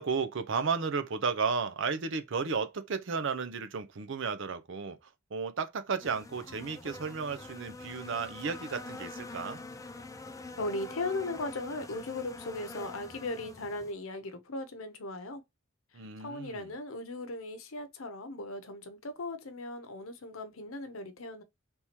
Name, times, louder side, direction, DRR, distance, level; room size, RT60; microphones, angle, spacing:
voice 1, 0.0-5.0 5.3-9.6 15.9-16.7, right 5 dB, 60° right, 0.6 m, -33 dB
sound 1, 6.0-13.9, left 2 dB, 15° left, 0.4 m, -45 dB
voice 2, 10.6-15.4 16.2-21.4, left 2 dB, 75° left, 0.8 m, -38 dB
3.5 x 2.9 x 4.3 m
head